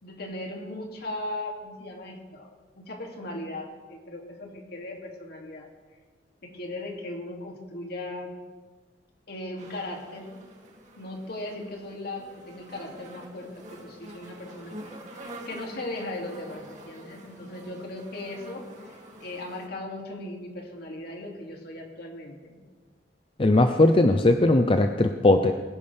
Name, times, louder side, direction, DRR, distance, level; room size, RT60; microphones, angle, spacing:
voice 1, 0.0-5.7 6.4-8.3 9.3-10.3 11.0-22.6, left 1 dB, 60° left, 0 dB, 2.6 m, -38 dB
sound 1, 9.6-19.7, right 1 dB, 40° right, 2.4 m, -46 dB
voice 2, 23.4-25.5, left 2 dB, 30° left, 7 dB, 0.5 m, -19 dB
21.5 x 11.0 x 3.5 m, 1.4 s
head